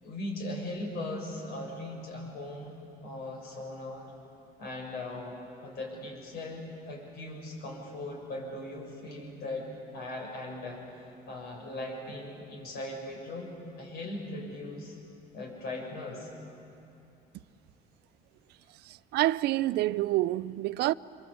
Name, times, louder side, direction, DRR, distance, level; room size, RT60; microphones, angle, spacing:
voice 1, 0.0-2.7 3.0-4.1 4.6-9.7 9.9-15.0 15.3-16.3, left 1 dB, 70° left, 7.1 m, -39 dB
voice 2, 18.9-20.9, right 16 dB, 80° right, 0.5 m, -27 dB
26.5 x 23.5 x 8.2 m
cardioid pair, 110°, 17 cm